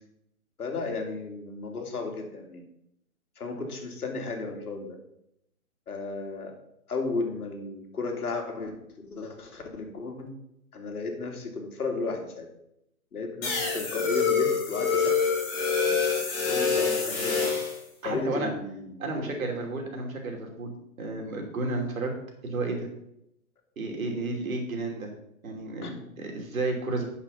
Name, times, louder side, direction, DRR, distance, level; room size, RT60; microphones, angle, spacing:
voice 1, 0.6-2.6 3.4-5.0 5.9-6.6 6.9-8.8 9.0-10.3 10.7-12.5 13.1-15.2 15.5-17.6 18.0-19.5 25.8-26.0, left 3 dB, 85° left, 3 dB, 2.4 m, -34 dB
sound 1, 13.4-17.8, left 5 dB, 15° left, 1.6 m, -26 dB
voice 2, 18.0-18.5 19.0-20.7 21.0-22.1 22.4-22.9 23.8-25.1 25.4-25.9 26.2-27.1, right 3 dB, 70° right, 2 dB, 2.8 m, -32 dB
8.4 x 5.9 x 5.5 m, 0.79 s
hypercardioid pair, 170°, 44 cm